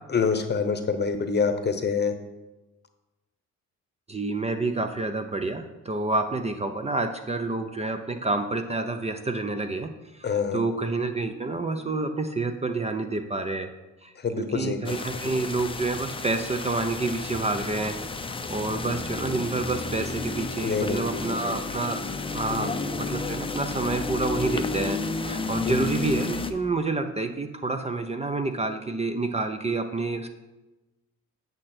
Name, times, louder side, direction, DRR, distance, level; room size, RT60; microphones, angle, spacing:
voice 1, 0.1-2.1 10.2-10.6 14.2-15.0 15.2-15.4 20.6-21.6 22.5-22.9 25.6-25.9, left 5 dB, 35° left, 8 dB, 0.9 m, -27 dB
voice 2, 4.1-9.9 10.5-13.7 14.0-18.0 18.3-22.0 22.3-30.3, right 3 dB, 20° right, 7 dB, 0.6 m, -28 dB
sound 1, 14.8-26.5, left 3 dB, 15° left, 0.6 m, -32 dB
8.2 x 6.5 x 4.4 m, 1.1 s
cardioid pair, 90°, 30 cm